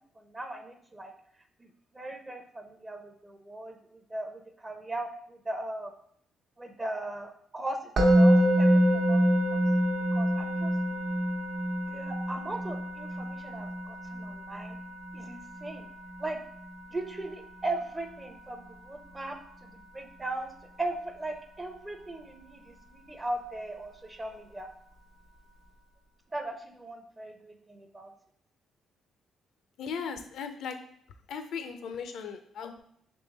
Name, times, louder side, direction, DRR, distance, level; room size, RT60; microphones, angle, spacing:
voice 1, 0.2-1.1 1.9-5.9 6.6-7.8 8.1-9.2 9.5-9.6 10.1-10.7 11.9-14.8 15.1-15.9 16.2-16.4 16.9-20.5 20.8-24.7 26.3-28.1, right 2 dB, 20° right, 5 dB, 0.5 m, -38 dB
Musical instrument, 8.0-19.1, equal, 70° right, 0.9 m, -27 dB
voice 2, 29.8-30.8 31.3-32.8, left 6 dB, 75° left, 7 dB, 0.5 m, -37 dB
3.6 x 3.2 x 4.0 m, 0.65 s
cardioid pair, 90°, 0 cm